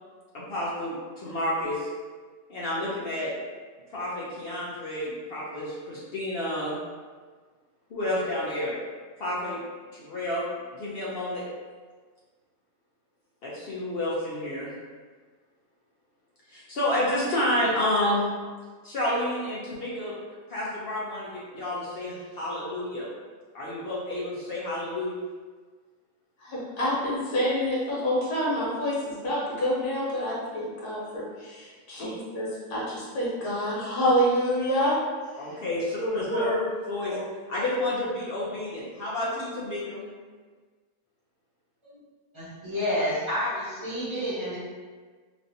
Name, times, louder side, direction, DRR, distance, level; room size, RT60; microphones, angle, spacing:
voice 1, 0.3-1.9 2.5-3.3 3.9-6.8 7.9-8.7 9.2-9.6 10.0-10.5 10.7-11.4 13.4-14.7 16.5-18.3 18.8-20.1 20.5-23.1 23.5-25.1 32.0-32.1 35.4-36.6 36.9-37.2 37.5-40.0, left 1 dB, 60° left, -7 dB, 0.6 m, -30 dB
voice 2, 26.4-34.9 36.0-36.6 36.9-37.2, equal, 90° left, -7 dB, 1.6 m, -27 dB
voice 3, 42.3-44.6, left 1 dB, 20° right, -11 dB, 0.9 m, -29 dB
3.1 x 2.6 x 2.6 m, 1.5 s
omnidirectional pair, 1.7 m